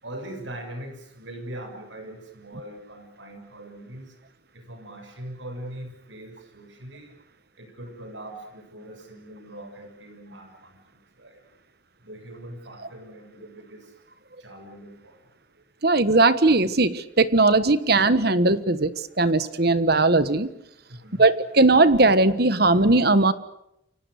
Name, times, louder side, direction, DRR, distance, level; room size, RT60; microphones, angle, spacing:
voice 1, 0.0-4.2 4.5-7.1 7.6-10.8 11.2-11.4 12.0-13.9 14.4-15.2 20.9-21.3, right 1 dB, 70° right, 6 dB, 6.7 m, -41 dB
voice 2, 15.8-18.9 19.2-20.5 21.2-23.3, right 2 dB, 55° right, 14 dB, 1.4 m, -19 dB
29.5 x 24.5 x 6.6 m, 0.80 s
head